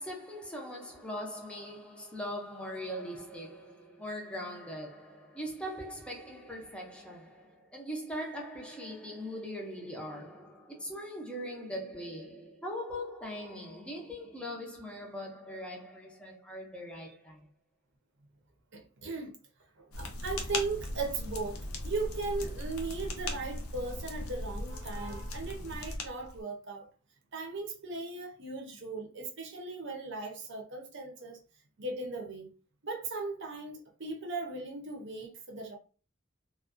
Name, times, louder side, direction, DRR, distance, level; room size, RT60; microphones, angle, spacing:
voice 1, 0.0-17.5, equal, 5° left, 0.5 m, -41 dB
voice 2, 18.7-19.3 19.8-26.9 27.3-31.4 31.8-32.5 32.8-35.7, right 3 dB, 55° right, 0.7 m, -38 dB
sound 1, 19.9-26.4, left 1 dB, 90° left, 0.6 m, -38 dB
2.4 x 2.2 x 2.5 m
head